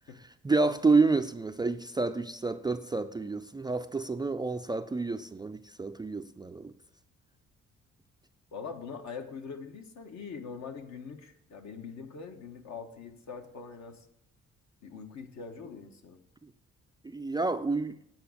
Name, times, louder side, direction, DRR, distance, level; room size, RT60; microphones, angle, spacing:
voice 1, 0.4-6.7 17.0-18.0, right 3 dB, 15° right, 0.3 m, -29 dB
voice 2, 8.5-14.1 14.8-16.2, left 5 dB, 65° left, 1.3 m, -43 dB
8.9 x 5.3 x 7.2 m
cardioid pair, 90°, 30 cm